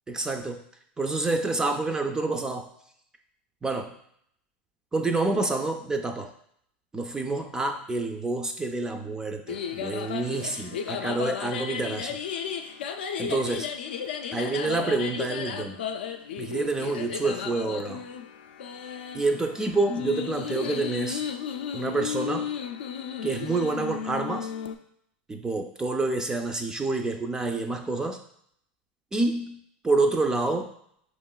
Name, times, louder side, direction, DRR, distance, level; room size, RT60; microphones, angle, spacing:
voice 1, 0.1-0.6 1.0-2.7 3.6-3.9 4.9-6.3 6.9-12.2 13.2-13.7 14.3-15.8 16.4-18.0 19.1-21.2 21.7-22.5 23.2-24.5 25.3-28.2 29.1-29.6 29.8-30.7, right 3 dB, 10° right, 5 dB, 0.3 m, -28 dB
sound 1, 9.5-24.8, left 8 dB, 85° left, 0.3 m, -34 dB
4.7 x 3.0 x 2.2 m, 0.69 s
hypercardioid pair, 115°, 5 cm